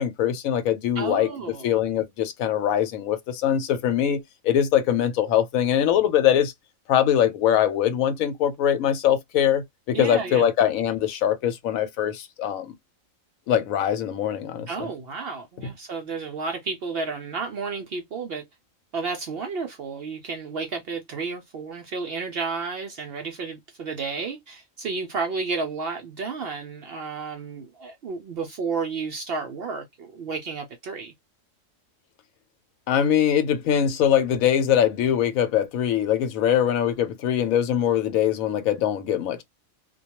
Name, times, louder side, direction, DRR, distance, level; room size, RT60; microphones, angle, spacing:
voice 1, 0.0-1.3 1.6-6.5 6.9-12.7 13.5-14.9 15.6-15.7 32.9-39.4, left 9 dB, 80° left, 1.0 m, -22 dB
voice 2, 1.0-1.7 9.9-10.5 14.7-18.4 18.9-31.1, right 4 dB, 65° right, 0.6 m, -32 dB
2.2 x 2.2 x 2.8 m
omnidirectional pair, 1.4 m